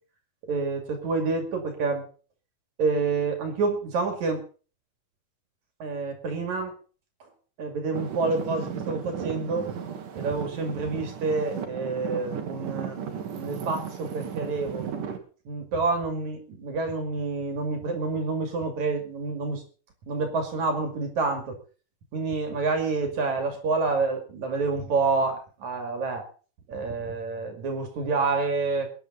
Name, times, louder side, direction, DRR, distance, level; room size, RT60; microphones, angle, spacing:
voice 1, 0.5-2.1 2.8-4.4 5.8-6.8 7.6-9.8 10.2-13.0 13.3-14.9 15.5-19.6 20.1-21.6 22.1-26.3 26.7-28.9, right 3 dB, 65° right, 5 dB, 3.6 m, -28 dB
Traffic noise roadway noise / Engine, 7.9-15.2, right 7 dB, 85° right, 3.4 m, -35 dB
22.5 x 10.5 x 4.0 m, 0.38 s
omnidirectional pair, 3.6 m